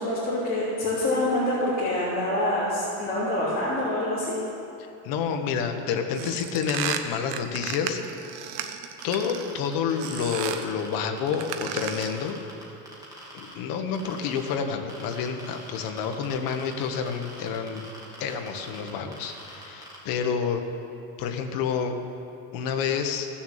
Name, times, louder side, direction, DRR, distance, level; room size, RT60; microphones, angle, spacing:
voice 1, 0.0-4.3, left 1 dB, 20° left, -9 dB, 3.2 m, -26 dB
voice 2, 5.0-8.0 9.0-12.4 13.3-17.9 18.2-20.6 21.2-21.9 22.5-23.3, left 6 dB, 55° left, 5 dB, 1.3 m, -29 dB
sound 1, 6.1-9.6 10.0-10.7 11.3-12.3, right 9 dB, 70° right, 1.0 m, -34 dB
sound 2, 9.0-13.5 13.9-14.5 14.9-20.0, right 1 dB, 10° right, 2.8 m, -44 dB
16.0 x 7.1 x 7.4 m, 2.8 s
cardioid pair, 150°, 41 cm